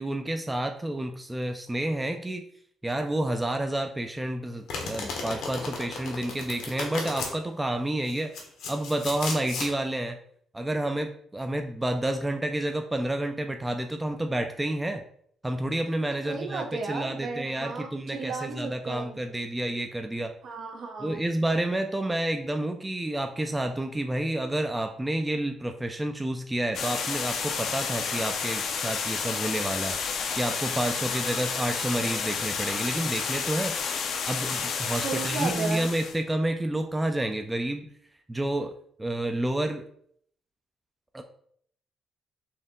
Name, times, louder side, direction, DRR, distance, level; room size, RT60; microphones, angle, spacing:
voice 1, 0.0-2.4 2.8-8.3 8.7-10.2 10.5-15.0 15.4-20.3 21.0-33.7 34.3-37.9 38.3-38.7 39.0-39.8 41.1-41.2, right 1 dB, 15° right, 5 dB, 0.4 m, -29 dB
Domestic sounds home sounds, 4.7-7.3 8.1-9.7, left 3 dB, 85° left, 1.1 m, -34 dB
voice 2, 16.2-19.2 20.4-21.2 34.9-35.9, right 4 dB, 65° right, 3 dB, 0.8 m, -34 dB
sound 1, 26.7-36.2, left 6 dB, 65° left, 0.6 m, -31 dB
4.3 x 2.8 x 3.6 m, 0.65 s
cardioid pair, 90°, 0 cm